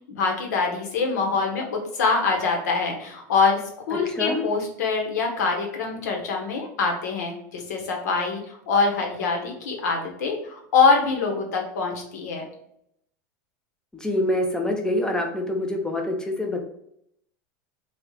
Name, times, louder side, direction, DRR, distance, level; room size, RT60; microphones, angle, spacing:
voice 1, 0.1-3.6 3.9-12.4, left 4 dB, 80° left, 2 dB, 1.0 m, -24 dB
voice 2, 3.9-4.4 13.9-16.6, left 1 dB, 5° left, 2 dB, 0.6 m, -26 dB
3.1 x 2.3 x 3.6 m, 0.73 s
supercardioid pair, 110°, 9 cm